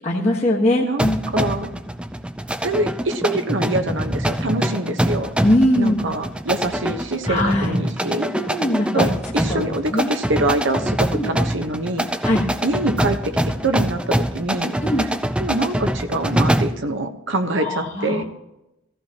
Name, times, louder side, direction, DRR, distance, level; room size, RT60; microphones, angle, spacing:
voice 1, 0.0-1.2 5.4-6.1 7.3-7.8 8.3-9.1 9.5-9.6 9.9-10.1 11.1-11.3 12.2-12.5 14.8-15.1 17.6-18.2, left 1 dB, 35° left, -3 dB, 1.4 m, -20 dB
voice 2, 0.8-1.7 2.6-5.3 5.8-8.3 8.9-9.1 9.3-12.1 12.6-15.1 15.4-18.2, right 2 dB, 65° right, 7 dB, 1.1 m, -25 dB
sound 1, 1.0-16.8, right 1 dB, 5° right, 0.4 m, -24 dB
16.0 x 15.0 x 3.0 m, 0.90 s
head